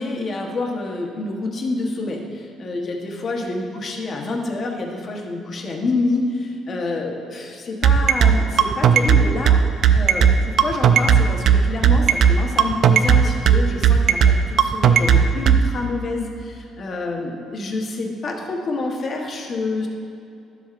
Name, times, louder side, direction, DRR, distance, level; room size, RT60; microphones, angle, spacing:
voice 1, 0.0-9.6 9.9-19.9, left 3 dB, 35° left, 0 dB, 1.0 m, -27 dB
sound 1, 7.8-15.6, right 8 dB, 55° right, 0.4 m, -14 dB
12.0 x 7.4 x 2.5 m, 2.6 s
cardioid pair, 150°, 0 cm